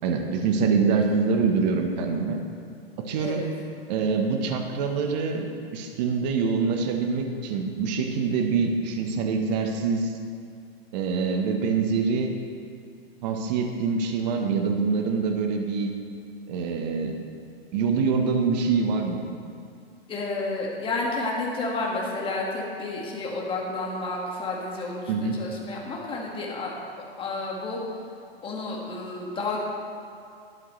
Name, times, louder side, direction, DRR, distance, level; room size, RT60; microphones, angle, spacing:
voice 1, 0.0-2.4 3.0-3.5 3.9-5.4 5.7-10.2 10.9-12.3 13.2-15.9 16.5-17.1 17.7-19.2 25.1-25.4, right 5 dB, 45° right, 3 dB, 1.2 m, -25 dB
voice 2, 3.2-3.5 20.1-26.7 27.2-27.8 28.4-29.6, left 3 dB, 15° left, -2 dB, 1.8 m, -31 dB
12.0 x 11.5 x 3.3 m, 2.4 s
hypercardioid pair, 145°, 31 cm